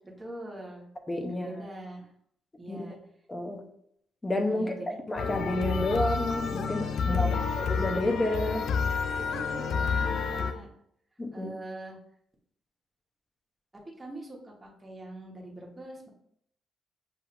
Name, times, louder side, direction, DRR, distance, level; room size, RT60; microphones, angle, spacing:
voice 1, 0.0-0.9 1.2-2.1 2.6-3.0 4.5-5.0 7.0-7.5 9.3-10.7 11.3-12.0 14.0-16.1, right 1 dB, 15° right, -3 dB, 1.3 m, -42 dB
voice 2, 1.1-1.6 2.7-2.8 3.3-3.6 4.2-4.7 5.1-7.3 7.6-8.7 11.2-11.5, left 1 dB, 20° left, 4 dB, 0.8 m, -30 dB
sound 1, 5.2-10.5, left 5 dB, 65° left, 0.4 m, -29 dB
6.9 x 2.7 x 2.6 m, 0.69 s
cardioid pair, 90°, 0 cm